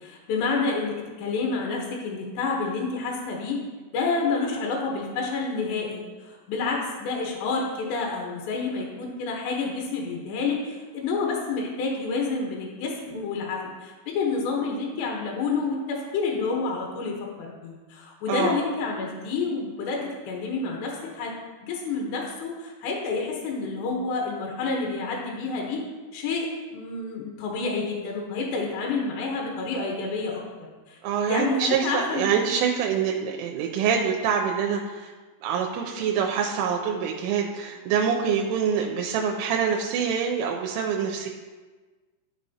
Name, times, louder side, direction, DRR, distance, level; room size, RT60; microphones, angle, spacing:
voice 1, 0.0-3.6 3.9-21.4 21.6-25.8 26.1-31.0 31.3-32.3, left 4 dB, 75° left, -1 dB, 3.0 m, -29 dB
voice 2, 31.0-35.1 35.4-41.3, right 7 dB, 90° right, 1 dB, 3.1 m, -25 dB
12.0 x 5.9 x 2.8 m, 1.3 s
omnidirectional pair, 5.5 m